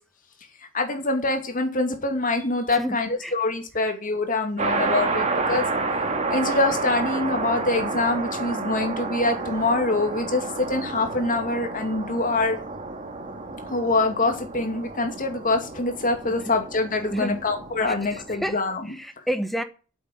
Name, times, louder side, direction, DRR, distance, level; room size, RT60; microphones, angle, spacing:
voice 1, 0.7-5.6 6.3-12.6 13.7-19.0, left 2 dB, 40° left, 2.6 m, -25 dB
voice 2, 2.7-3.3 3.8-3.9 5.6-5.7 16.4-16.5 17.1-17.5 17.9-18.6 18.8-19.6, equal, ahead, 1.1 m, -30 dB
sound 1, 4.6-18.5, right 3 dB, 35° right, 2.0 m, -30 dB
9.0 x 7.9 x 8.7 m
head